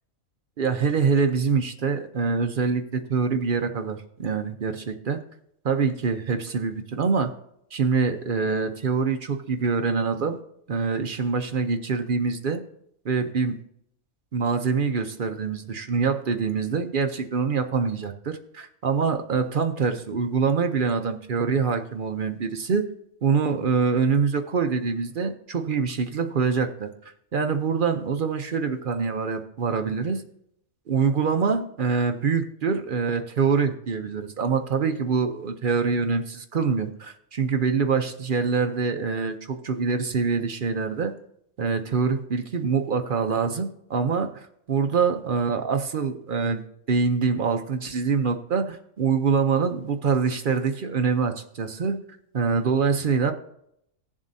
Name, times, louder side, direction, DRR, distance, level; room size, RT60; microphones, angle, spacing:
voice 1, 0.6-5.2 5.6-7.3 7.7-10.4 10.7-12.6 13.0-13.6 14.3-22.9 23.2-26.9 27.3-30.2 30.9-41.1 41.6-46.6 46.9-52.0 52.3-53.3, right 5 dB, 55° right, 6 dB, 0.6 m, -25 dB
17.5 x 7.3 x 2.6 m, 0.76 s
omnidirectional pair, 1.5 m